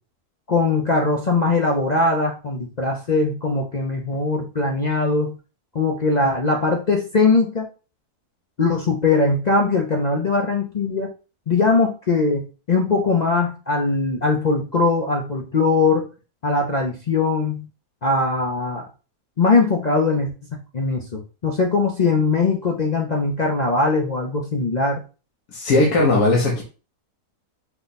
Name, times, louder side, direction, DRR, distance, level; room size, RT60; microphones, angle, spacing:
voice 1, 0.5-5.4 5.7-7.7 8.6-11.1 11.5-16.1 16.4-17.7 18.0-18.8 19.4-20.3 20.7-25.0, left 3 dB, 55° left, 0 dB, 0.4 m, -20 dB
voice 2, 25.5-26.6, left 2 dB, 80° left, -3 dB, 1.5 m, -18 dB
5.6 x 2.2 x 3.9 m, 0.34 s
omnidirectional pair, 1.6 m